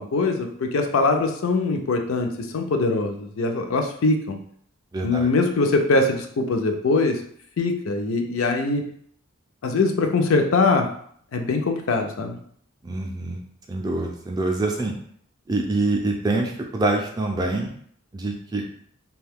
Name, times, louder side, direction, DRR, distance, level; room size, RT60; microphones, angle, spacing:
voice 1, 0.0-4.4 5.0-7.2 7.6-8.8 9.6-10.9 11.3-12.4, left 3 dB, 80° left, 4 dB, 0.5 m, -22 dB
voice 2, 4.9-5.3 12.8-13.4 13.7-15.0 15.5-17.7 18.1-18.6, right 2 dB, 20° right, 1 dB, 0.3 m, -25 dB
2.6 x 2.2 x 3.4 m, 0.62 s
head